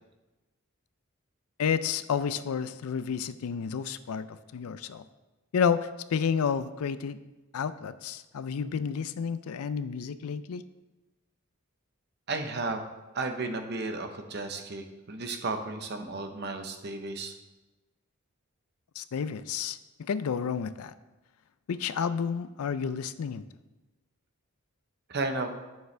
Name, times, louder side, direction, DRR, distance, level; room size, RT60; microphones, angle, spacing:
voice 1, 1.6-5.0 5.5-7.2 7.5-10.6 19.0-20.9 21.7-23.4, left 6 dB, 90° left, 14 dB, 0.4 m, -30 dB
voice 2, 12.3-12.8 13.1-17.3 25.1-25.6, right 3 dB, 50° right, 6 dB, 0.8 m, -33 dB
9.2 x 6.8 x 3.3 m, 1.1 s
head